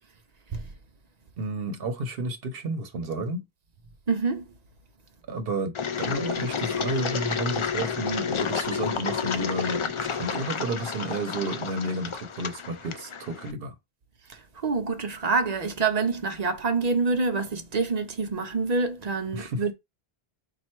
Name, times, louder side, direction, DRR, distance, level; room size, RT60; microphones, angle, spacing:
voice 1, 1.4-3.4 5.3-13.7 19.3-19.6, right 2 dB, 65° right, 1.0 m, -31 dB
voice 2, 4.1-4.5 14.3-19.7, right 4 dB, 45° right, 0.7 m, -26 dB
Engine, 5.7-13.5, left 6 dB, 55° left, 0.3 m, -30 dB
4.3 x 2.5 x 4.4 m
omnidirectional pair, 1.1 m